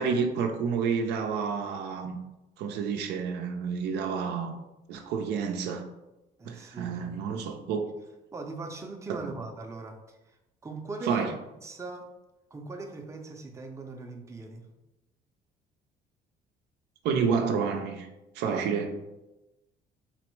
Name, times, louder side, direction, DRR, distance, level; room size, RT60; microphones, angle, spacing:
voice 1, 0.0-2.2 2.6-4.6 4.9-5.8 6.4-7.9 9.2-9.3 11.1-11.3 17.0-18.1 18.4-19.0, right 5 dB, 80° right, 4 dB, 0.5 m, -29 dB
voice 2, 6.4-7.3 8.3-10.2 10.6-11.3 11.6-12.1 12.5-14.7, right 3 dB, 15° right, 2 dB, 0.5 m, -40 dB
4.1 x 2.0 x 4.4 m, 0.99 s
cardioid pair, 110°, 17 cm